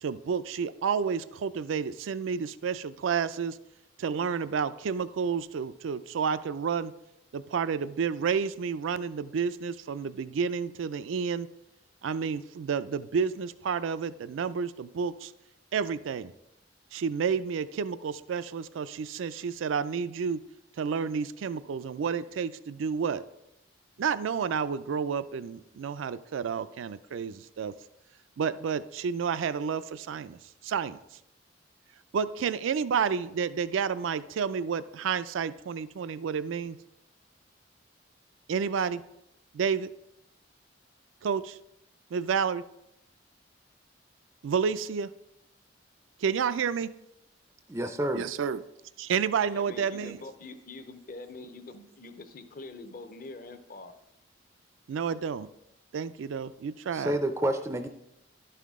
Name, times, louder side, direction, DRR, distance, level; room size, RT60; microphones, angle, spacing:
voice 1, 0.0-3.6 4.0-6.9 7.3-11.5 12.0-15.3 15.7-16.3 16.9-20.4 20.8-23.2 24.0-27.7 28.4-31.0 32.1-36.8 38.5-39.0 39.5-39.9 41.2-41.6 42.1-42.6 44.4-45.1 46.2-46.9 48.1-48.6 49.0-50.2 54.9-55.5 55.9-57.2, right 6 dB, 90° right, 15 dB, 0.4 m, -30 dB
voice 2, 47.7-48.2 56.9-57.9, right 1 dB, 15° right, 7 dB, 0.4 m, -29 dB
voice 3, 49.5-54.0, left 3 dB, 50° left, 9 dB, 0.6 m, -44 dB
11.5 x 5.7 x 3.6 m, 0.84 s
head